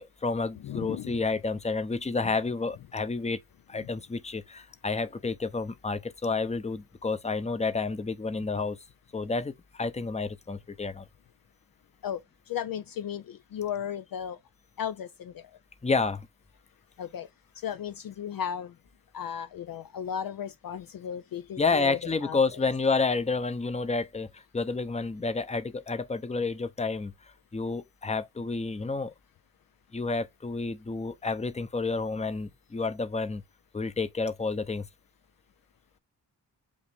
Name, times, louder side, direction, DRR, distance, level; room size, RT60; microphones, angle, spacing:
voice 1, 0.0-3.4 3.7-8.8 9.1-11.1 15.8-16.3 21.6-29.1 29.9-33.4 33.7-34.9, left 4 dB, 15° left, 0.7 m, -30 dB
voice 2, 0.6-1.2 3.8-3.9 12.0-12.2 12.5-14.4 14.8-15.3 17.0-17.3 17.6-18.7 19.1-22.6, left 9 dB, 55° left, 0.5 m, -35 dB
5.3 x 2.5 x 3.4 m
supercardioid pair, 45°, 43 cm